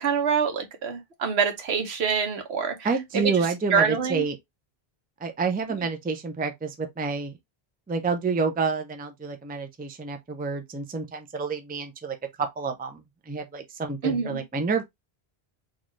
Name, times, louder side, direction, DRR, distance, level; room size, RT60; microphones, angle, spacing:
voice 1, 0.0-2.7 3.1-3.5 3.7-4.3 14.0-14.4, right 6 dB, 85° right, 1.2 m, -25 dB
voice 2, 2.8-4.4 5.2-7.4 7.9-12.2 12.6-14.8, right 4 dB, 15° right, 0.4 m, -29 dB
4.0 x 2.4 x 3.1 m
omnidirectional pair, 1.0 m